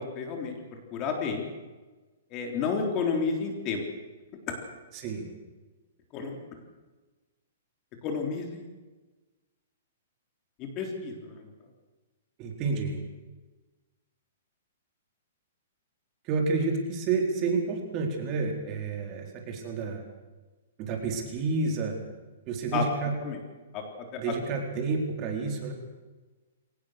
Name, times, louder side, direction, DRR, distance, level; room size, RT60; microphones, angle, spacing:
voice 1, 0.0-1.5 2.3-3.8 4.5-4.6 6.1-6.4 8.0-8.7 10.6-11.5 22.7-22.9 23.2-23.4 23.7-24.2, left 5 dB, 30° left, 3 dB, 3.8 m, -31 dB
voice 2, 4.9-5.3 12.4-13.0 16.2-20.0 20.8-22.0 22.5-23.1 24.2-25.7, right 4 dB, 30° right, 2 dB, 4.1 m, -29 dB
23.0 x 18.5 x 6.7 m, 1.2 s
hypercardioid pair, 155°, 0 cm